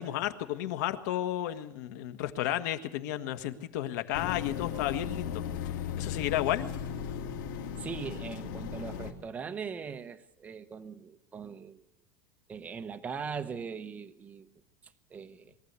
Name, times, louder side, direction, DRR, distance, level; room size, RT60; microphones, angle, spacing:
voice 1, 0.0-5.4 6.0-6.7, left 13 dB, 65° left, 8 dB, 1.6 m, -32 dB
sound 1, 4.1-9.1, left 8 dB, 80° left, 2.8 m, -36 dB
voice 2, 7.8-11.8 12.5-14.5 14.8-15.5, right 6 dB, 15° right, 8 dB, 0.9 m, -40 dB
23.0 x 14.5 x 8.3 m, 0.86 s
supercardioid pair, 160°, 10 cm